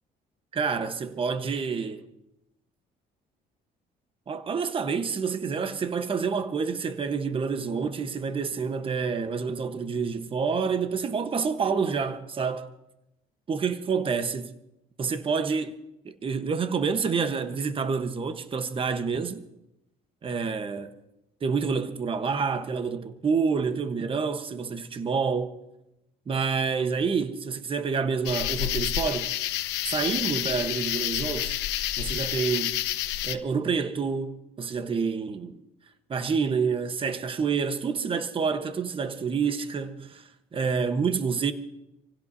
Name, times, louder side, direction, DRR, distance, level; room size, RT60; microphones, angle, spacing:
voice 1, 0.5-2.1 4.3-12.7 13.5-14.5 15.0-15.7 16.0-19.4 20.2-20.9 21.4-25.5 26.3-29.3 29.9-31.6 32.0-32.8 33.2-35.6 36.1-41.5, right 5 dB, 30° right, 1.1 m, -28 dB
sound 1, 28.3-33.4, left 13 dB, 90° left, 0.9 m, -29 dB
27.5 x 16.5 x 2.8 m
cardioid pair, 110°, 17 cm